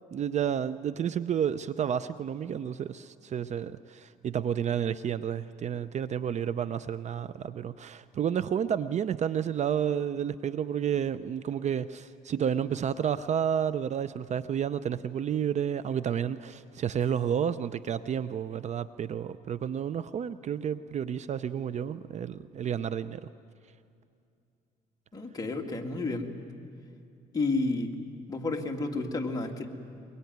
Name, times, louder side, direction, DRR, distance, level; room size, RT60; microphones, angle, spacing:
voice 1, 0.1-23.2, right 8 dB, 45° right, 14 dB, 0.6 m, -31 dB
voice 2, 25.1-26.4 27.3-27.9 28.3-29.7, left 3 dB, 20° left, 1 dB, 2.3 m, -31 dB
23.0 x 22.5 x 9.4 m, 2.5 s
cardioid pair, 110°, 17 cm